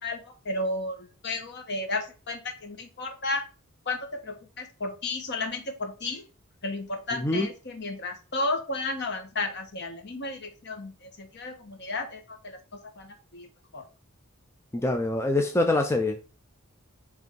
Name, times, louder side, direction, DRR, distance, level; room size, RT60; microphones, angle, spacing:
voice 1, 0.0-3.4 3.9-6.2 6.6-12.6 13.0-13.5 13.7-13.8, left 2 dB, 50° left, 1.3 m, -33 dB
voice 2, 7.1-7.5 14.7-16.2, left 2 dB, 10° left, 0.5 m, -25 dB
5.3 x 3.5 x 5.2 m
head